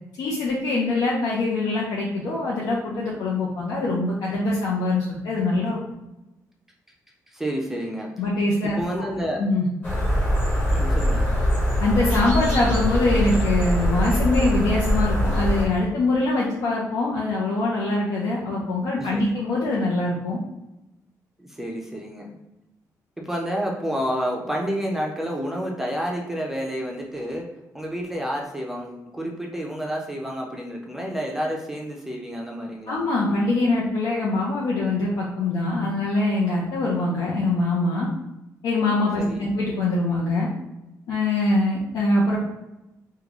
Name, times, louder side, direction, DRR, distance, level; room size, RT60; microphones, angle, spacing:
voice 1, 0.2-5.8 8.2-9.1 9.4-9.7 11.8-20.4 32.9-38.1 38.6-40.5 41.1-42.4, left 2 dB, 85° left, -5 dB, 0.6 m, -23 dB
voice 2, 7.3-8.1 8.6-9.4 10.7-11.3 19.0-19.3 21.4-22.3 23.2-27.5 27.7-33.0 39.2-39.5, equal, 5° right, -1 dB, 0.4 m, -29 dB
sound 1, 9.8-15.6, equal, 30° left, 0.9 m, -22 dB
3.7 x 2.2 x 2.9 m, 0.94 s
cardioid pair, 165°, 7 cm